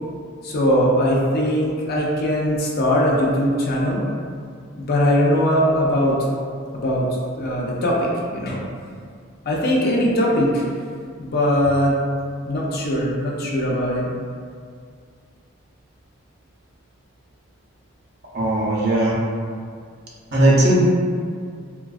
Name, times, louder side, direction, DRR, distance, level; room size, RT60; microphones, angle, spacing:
voice 1, 0.4-4.1 4.8-6.2 6.7-7.1 7.4-8.6 9.5-10.6 11.2-11.9 12.5-14.1, equal, 45° left, -3 dB, 0.4 m, -20 dB
voice 2, 18.3-19.2 20.3-20.8, right 1 dB, 50° right, -5 dB, 0.5 m, -17 dB
2.4 x 2.2 x 2.3 m, 2.1 s
head